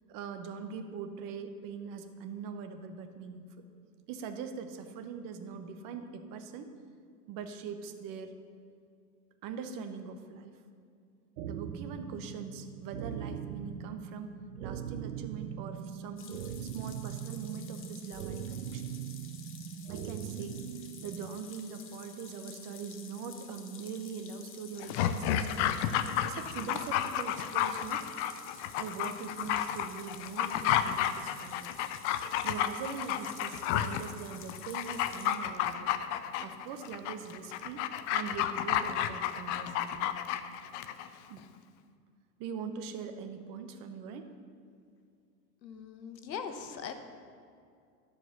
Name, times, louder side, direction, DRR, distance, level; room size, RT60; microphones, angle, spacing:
voice 1, 0.1-3.6 4.1-6.7 7.3-8.3 9.4-10.5 11.5-16.2 16.6-18.9 19.9-20.6 21.0-25.8 26.2-28.1 28.8-31.8 32.4-35.9 36.4-40.1 41.3-41.4 42.4-44.3, right 6 dB, 40° right, 7 dB, 1.0 m, -42 dB
sound 1, 11.4-21.3, right 8 dB, 70° right, 0.7 m, -41 dB
sound 2, 16.2-35.4, left 7 dB, 25° left, 1.0 m, -51 dB
Dog, 24.8-41.1 41.4-41.5, left 10 dB, 45° left, 0.6 m, -31 dB
voice 2, 45.6-46.9, left 6 dB, 85° left, 8 dB, 1.1 m, -40 dB
12.0 x 5.0 x 6.8 m, 2.3 s
hypercardioid pair, 105°, 50 cm